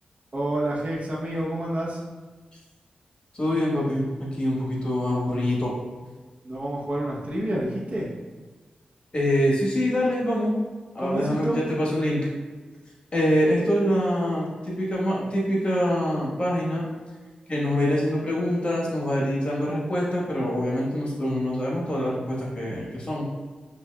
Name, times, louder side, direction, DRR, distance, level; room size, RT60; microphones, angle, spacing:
voice 1, 0.3-2.0 6.4-8.1 11.0-11.6, right 1 dB, 50° right, -4 dB, 0.8 m, -28 dB
voice 2, 3.3-5.7 9.1-10.5 10.9-12.3 13.1-16.9 17.5-23.3, equal, 40° left, -5 dB, 1.2 m, -25 dB
5.5 x 2.4 x 2.2 m, 1.3 s
cardioid pair, 55°, 3 cm